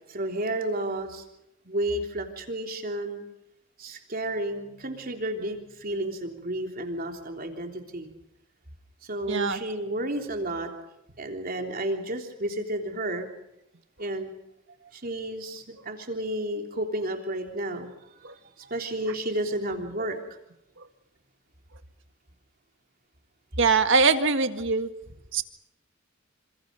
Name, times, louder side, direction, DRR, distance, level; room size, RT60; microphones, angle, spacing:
voice 1, 0.1-1.2 1.6-3.2 3.8-8.1 9.0-10.7 11.2-13.3 14.0-14.3 14.9-18.3 18.6-20.2, right 1 dB, 45° right, 3 dB, 3.4 m, -32 dB
voice 2, 9.3-9.6 18.2-18.3 23.6-24.9 25.3-25.4, right 4 dB, 60° right, 8 dB, 1.9 m, -22 dB
28.5 x 26.5 x 5.4 m, 0.86 s
head